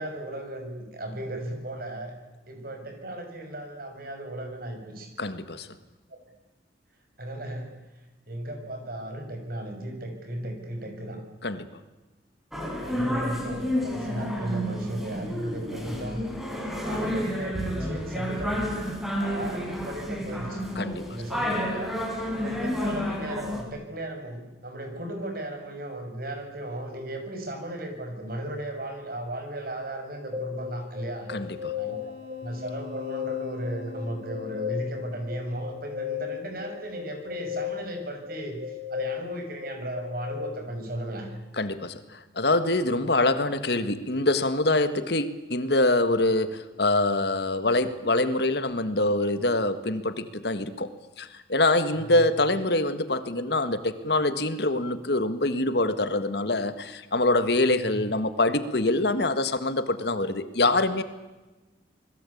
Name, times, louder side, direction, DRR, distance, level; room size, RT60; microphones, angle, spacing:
voice 1, 0.0-2.1 2.5-5.1 7.2-7.7 8.3-11.2 12.8-16.2 16.8-18.8 19.2-20.7 21.1-22.0 22.4-31.3 31.8-32.1 32.4-38.6 38.9-41.3 51.9-52.2 57.9-58.1, right 1 dB, 55° right, 5 dB, 6.6 m, -36 dB
voice 2, 5.2-5.7 11.4-11.7 20.8-21.0 31.3-31.7 41.6-41.9 42.4-50.9 51.2-61.0, left 2 dB, 60° left, 11 dB, 1.7 m, -25 dB
sound 1, 12.5-23.6, equal, ahead, 5.0 m, -30 dB
sound 2, 30.3-40.5, left 8 dB, 30° right, 6.5 m, -35 dB
28.0 x 21.0 x 8.6 m, 1.1 s
head